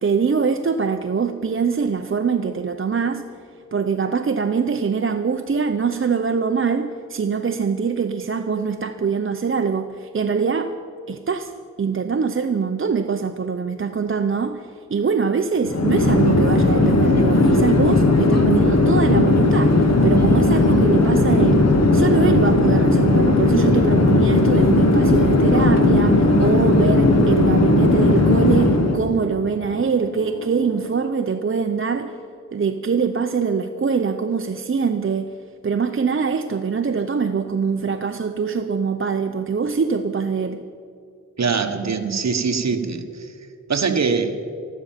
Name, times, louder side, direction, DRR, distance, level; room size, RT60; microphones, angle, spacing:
voice 1, 0.0-3.2 3.7-10.7 11.1-11.5 11.8-21.6 21.9-32.1 32.5-35.3 35.6-40.7, right 5 dB, 40° right, 7 dB, 0.7 m, -23 dB
Chatter / Fixed-wing aircraft airplane, 15.6-29.0, left 2 dB, 55° left, 1.5 m, -16 dB
sound 1, 21.7-30.9, left 3 dB, 70° left, 3.7 m, -39 dB
voice 2, 41.4-43.3 43.7-44.4, right 5 dB, 55° right, 6 dB, 1.4 m, -22 dB
13.5 x 12.0 x 7.4 m, 2.4 s
wide cardioid pair, 90°, 32 cm